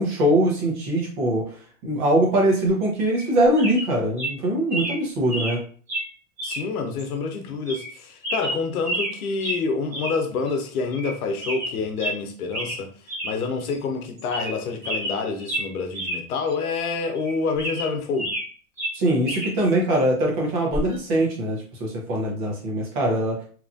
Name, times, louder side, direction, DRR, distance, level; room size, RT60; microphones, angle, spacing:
voice 1, 0.0-1.5 1.8-5.6 18.9-23.4, right 1 dB, 35° right, 0.9 m, -22 dB
sound 1, 3.1-3.3 3.6-3.9 4.2-4.3 4.7-5.0 5.3-5.6 5.9-6.1 6.4-6.6 7.0-7.1 7.7-7.9 8.2-9.1 9.4-9.6 9.9-10.2 10.5-10.6 10.9-11.1 11.4-12.2 12.5-12.8 13.1-13.3 13.7-13.8 14.2-14.6 14.8-16.2 16.5-16.6 17.1-18.5 18.8-19.5 20.7-20.9, right 1 dB, 15° right, 0.3 m, -30 dB
voice 2, 6.4-12.9 13.2-18.3, left 4 dB, 80° left, 0.8 m, -27 dB
2.9 x 2.4 x 2.5 m
supercardioid pair, 155°, 43 cm